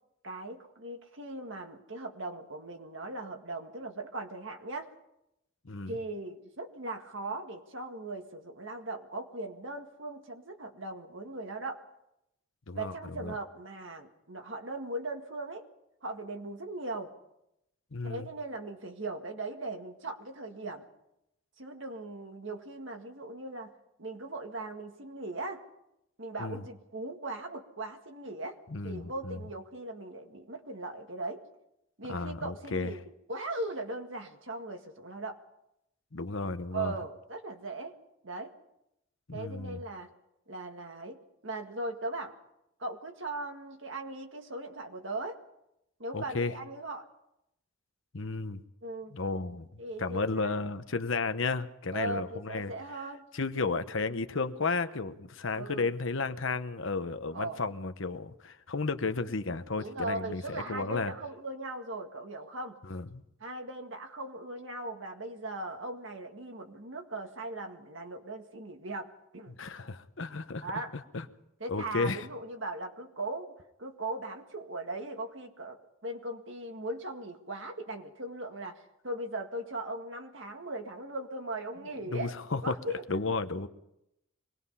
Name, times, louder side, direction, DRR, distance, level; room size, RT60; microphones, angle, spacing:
voice 1, 0.2-4.9 5.9-11.8 12.7-15.6 16.0-17.1 18.0-20.9 21.6-23.7 24.0-25.6 26.2-28.6 28.8-31.4 32.0-33.0 33.3-35.4 36.7-38.0 38.2-38.5 39.3-40.1 40.5-42.3 42.8-45.4 46.0-47.1 48.8-49.2 49.8-50.6 51.9-53.2 55.6-55.9 57.3-57.6 59.8-62.8 63.4-69.6 70.6-70.9 71.6-83.0, right 2 dB, 60° right, 4 dB, 1.9 m, -39 dB
voice 2, 12.7-13.3 17.9-18.3 26.4-26.6 28.7-29.4 32.1-32.9 36.1-36.9 39.3-39.8 46.1-46.5 48.1-48.6 49.1-49.7 50.0-52.7 53.3-61.1 62.9-63.2 69.6-71.2 71.7-72.3 82.1-82.7 83.1-83.7, left 3 dB, 65° left, 10 dB, 1.0 m, -33 dB
24.0 x 20.0 x 5.6 m, 0.85 s
head